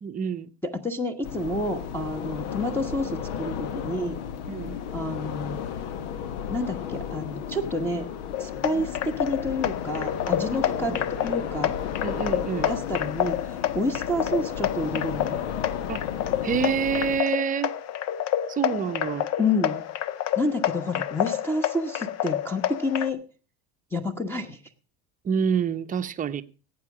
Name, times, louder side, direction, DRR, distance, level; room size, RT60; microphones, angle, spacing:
voice 1, 0.0-0.5 4.5-4.8 10.5-10.6 10.9-11.0 12.0-12.7 15.9-16.0 16.4-17.7 18.5-19.3 25.2-26.4, right 6 dB, 25° right, 0.8 m, -27 dB
voice 2, 0.6-4.2 4.9-5.6 6.5-8.1 8.4-11.7 12.7-15.4 19.4-19.8 20.4-23.2 23.9-24.6, left 1 dB, 5° left, 1.1 m, -29 dB
sound 1, 1.2-17.2, left 8 dB, 85° left, 1.2 m, -34 dB
sound 2, 8.3-23.1, left 12 dB, 50° left, 0.9 m, -29 dB
17.5 x 8.5 x 4.8 m
supercardioid pair, 130°, 33 cm